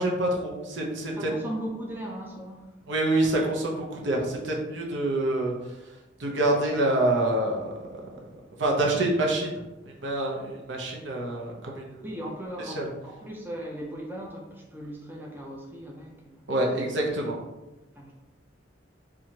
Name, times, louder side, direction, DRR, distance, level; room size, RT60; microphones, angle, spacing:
voice 1, 0.0-1.3 2.9-5.5 6.2-8.2 8.6-9.5 10.0-12.0 12.7-12.9 16.5-17.4, right 1 dB, 75° right, -1 dB, 0.7 m, -26 dB
voice 2, 1.1-2.7 12.0-16.5 18.0-18.1, right 1 dB, 10° right, -2 dB, 0.4 m, -38 dB
4.4 x 2.4 x 2.8 m, 1.1 s
head